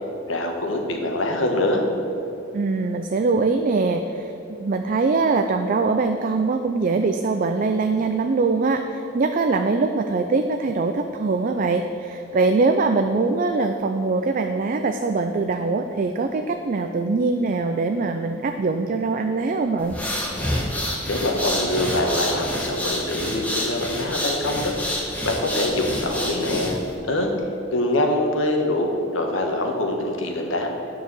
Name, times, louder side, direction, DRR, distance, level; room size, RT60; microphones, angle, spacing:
voice 1, 0.3-1.8 21.1-24.7 25.2-26.8 27.0-27.3 27.7-30.7, left 1 dB, 80° left, 2 dB, 1.3 m, -24 dB
voice 2, 2.5-19.9, right 3 dB, 45° right, 6 dB, 0.4 m, -22 dB
sound 1, 19.8-26.9, left 1 dB, 10° left, 1.3 m, -28 dB
9.8 x 4.7 x 7.5 m, 2.8 s
head